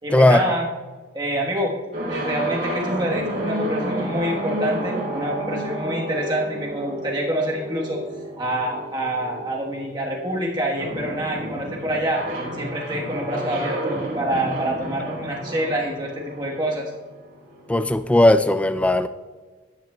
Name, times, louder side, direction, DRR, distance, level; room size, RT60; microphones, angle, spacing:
voice 1, 0.0-0.7 1.1-1.7 2.1-8.0 8.4-12.2 12.5-16.9, right 1 dB, 25° right, -2 dB, 1.2 m, -26 dB
sound 1, 1.9-17.7, right 1 dB, 45° right, 2.9 m, -31 dB
voice 2, 17.7-19.1, left 1 dB, 5° left, 11 dB, 0.3 m, -16 dB
14.0 x 10.5 x 2.2 m, 1.3 s
head